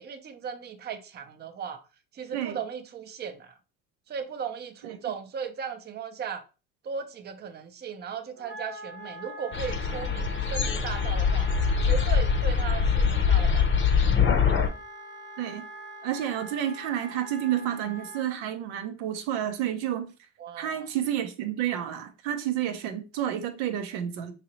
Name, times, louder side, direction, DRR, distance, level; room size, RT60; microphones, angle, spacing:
voice 1, 0.0-1.8 2.1-3.5 4.1-6.4 6.8-11.5 11.8-14.0 20.4-20.9, right 7 dB, 35° right, 0.6 m, -37 dB
Wind instrument woodwind instrument, 8.3-18.2, equal, 50° right, 0.9 m, -43 dB
sound 1, 9.5-14.7, left 6 dB, 40° left, 0.7 m, -23 dB
voice 2, 16.0-20.1 20.6-24.3, right 11 dB, 80° right, 0.6 m, -30 dB
3.8 x 2.8 x 2.9 m
supercardioid pair, 90°, 30 cm